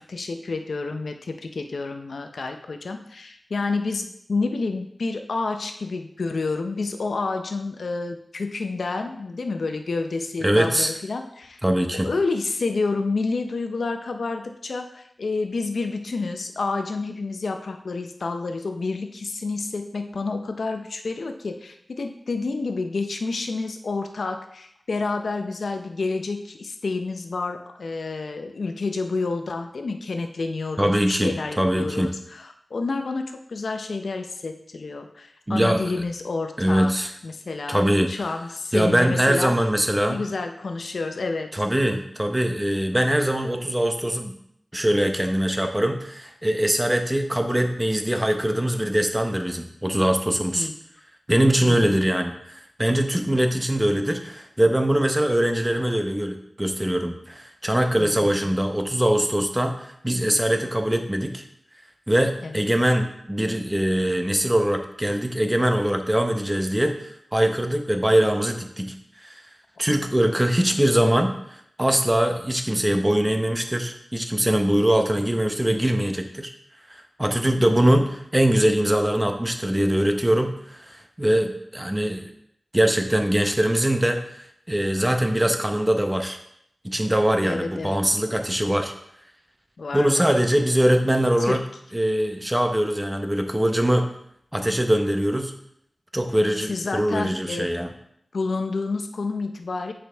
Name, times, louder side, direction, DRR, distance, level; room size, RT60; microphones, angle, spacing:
voice 1, 0.0-11.6 12.0-36.9 37.2-39.5 40.1-41.5 50.5-50.7 51.6-52.1 58.0-58.5 62.4-62.7 87.4-88.0 89.8-90.4 91.4-91.6 96.7-97.7 98.3-99.9, left 3 dB, 90° left, 6 dB, 0.6 m, -29 dB
voice 2, 10.4-10.9 11.6-12.1 30.8-31.3 31.6-32.1 35.5-35.8 36.6-37.1 37.7-38.1 38.7-40.2 41.5-44.3 44.7-50.7 51.3-61.4 62.1-67.0 67.3-68.9 69.2-69.4 69.8-76.5 76.9-82.3 82.7-84.2 84.7-86.4 86.8-88.9 89.9-91.6 91.9-94.1 94.5-95.5 96.1-97.9, right 1 dB, 15° right, 5 dB, 0.8 m, -22 dB
8.1 x 5.1 x 3.4 m, 0.72 s
wide cardioid pair, 65°, 0 cm